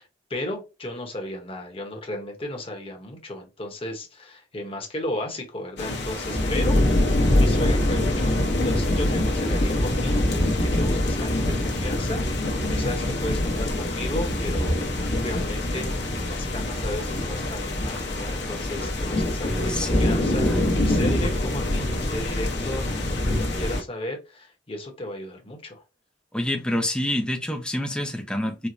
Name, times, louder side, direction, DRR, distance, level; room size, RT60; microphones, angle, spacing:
voice 1, 0.0-6.8 7.3-10.2 10.6-14.8 15.2-23.2 23.5-25.8, left 1 dB, 30° left, 1.0 m, -34 dB
sound 1, 5.8-23.8, left 1 dB, 65° left, 1.0 m, -24 dB
voice 2, 19.7-20.1 20.4-20.7 26.3-28.7, left 1 dB, 5° left, 0.5 m, -27 dB
4.5 x 2.1 x 2.5 m
head